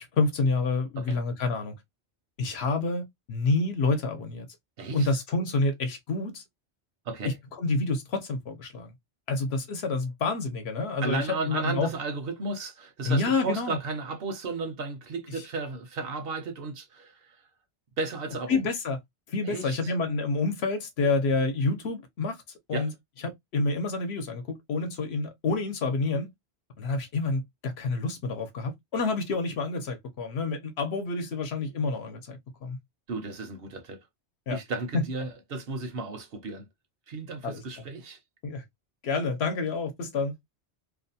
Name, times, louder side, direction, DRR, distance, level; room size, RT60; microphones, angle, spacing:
voice 1, 0.0-1.8 2.4-4.5 4.9-6.4 7.2-7.3 7.6-8.9 9.3-11.9 13.0-13.8 18.5-19.0 19.3-22.4 22.7-22.9 23.2-26.3 26.8-32.8 34.5-34.6 34.9-35.0 37.4-37.6 38.4-38.6 39.0-40.3, left 3 dB, 70° left, 0.9 m, -28 dB
voice 2, 4.8-5.1 7.1-7.3 11.0-17.5 18.0-18.6 19.4-19.9 22.7-22.9 33.1-34.1 34.5-36.7 37.1-38.2, right 3 dB, 60° right, 0.8 m, -34 dB
2.5 x 2.2 x 2.6 m
omnidirectional pair, 1.2 m